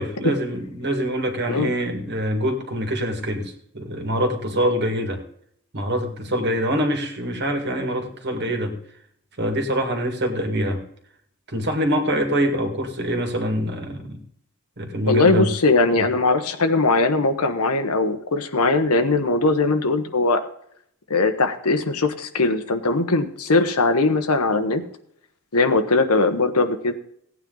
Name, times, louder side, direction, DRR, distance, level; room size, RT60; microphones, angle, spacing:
voice 1, 0.0-5.2 5.7-8.8 9.4-10.8 11.5-14.2 14.8-15.5, equal, 50° right, 5 dB, 2.0 m, -24 dB
voice 2, 15.1-20.4 21.1-24.8 25.5-26.9, left 3 dB, 85° left, 8 dB, 1.2 m, -20 dB
16.5 x 9.0 x 3.9 m, 0.68 s
head